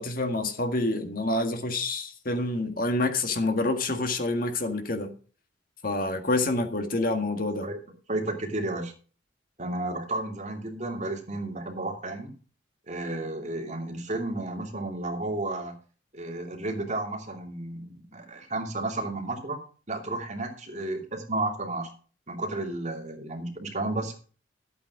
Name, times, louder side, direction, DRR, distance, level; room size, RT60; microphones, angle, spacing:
voice 1, 0.0-5.1 5.8-7.7, left 2 dB, 50° left, 1.7 m, -27 dB
voice 2, 8.1-8.9 9.6-12.3 12.9-15.8 16.1-19.6 19.9-21.9 22.3-24.1, right 2 dB, 40° right, 2.7 m, -32 dB
12.5 x 8.5 x 4.7 m
head